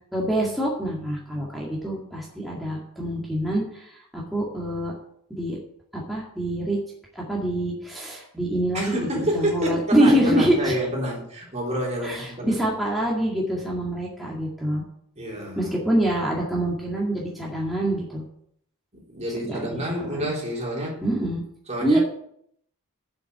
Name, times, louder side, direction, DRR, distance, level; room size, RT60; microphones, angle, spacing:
voice 1, 0.1-4.9 5.3-5.6 5.9-6.8 7.1-9.1 9.3-10.7 12.0-14.8 15.6-18.2 19.5-19.8 20.1-20.3 21.0-21.4 21.8-22.0, right 1 dB, ahead, -5 dB, 2.1 m, -25 dB
voice 2, 8.7-12.6 15.2-15.7 19.1-21.0 21.7-22.0, right 1 dB, 30° right, -3 dB, 3.6 m, -28 dB
8.0 x 7.8 x 8.5 m, 0.69 s
head